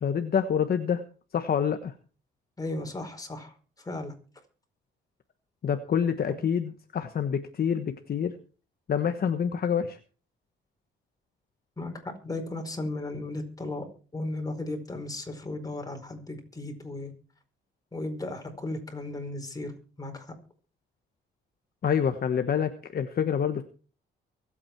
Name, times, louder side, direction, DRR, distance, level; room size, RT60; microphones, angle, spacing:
voice 1, 0.0-1.0 1.3-1.9 5.6-8.3 8.9-10.0 21.8-23.6, left 7 dB, 50° left, 8 dB, 1.3 m, -27 dB
voice 2, 2.6-3.5 3.8-4.1 11.8-13.9 14.1-17.1 17.9-19.7 20.0-20.3, left 2 dB, 20° left, 4 dB, 4.8 m, -35 dB
23.5 x 8.7 x 4.6 m, 0.39 s
cardioid pair, 90°, 20 cm